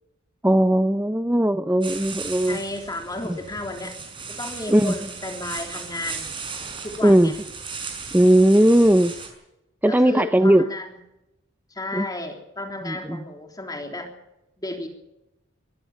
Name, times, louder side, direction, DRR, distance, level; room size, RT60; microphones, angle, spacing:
voice 1, 0.4-2.6 3.2-3.4 4.7-4.9 7.0-7.3 8.1-9.1 9.8-10.6 11.9-12.1 12.8-13.2, right 1 dB, 10° right, 10 dB, 0.6 m, -18 dB
sound 1, 1.8-9.3, right 5 dB, 25° right, 5.6 m, -36 dB
voice 2, 2.5-4.0 4.3-6.3 6.8-7.4 9.9-10.9 11.7-14.1 14.6-14.9, left 2 dB, 20° left, 3 dB, 3.4 m, -33 dB
23.5 x 15.5 x 7.3 m, 0.90 s
head